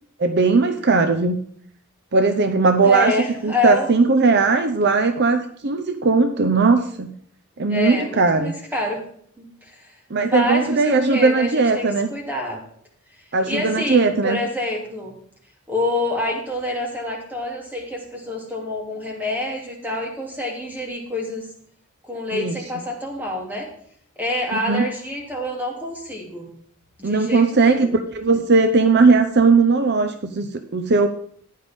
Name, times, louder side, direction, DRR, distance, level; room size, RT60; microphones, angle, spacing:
voice 1, 0.2-1.4 2.1-3.1 3.4-7.1 7.6-8.5 10.1-12.1 13.3-14.4 22.3-22.6 24.7-24.9 27.0-31.1, right 4 dB, 50° right, 8 dB, 0.7 m, -18 dB
voice 2, 2.8-3.9 7.7-9.0 9.4-9.9 10.2-12.6 13.5-15.1 15.7-21.5 22.0-23.7 24.2-26.5 27.0-27.9, left 2 dB, 10° right, -1 dB, 2.9 m, -27 dB
15.0 x 10.5 x 3.7 m, 0.62 s
head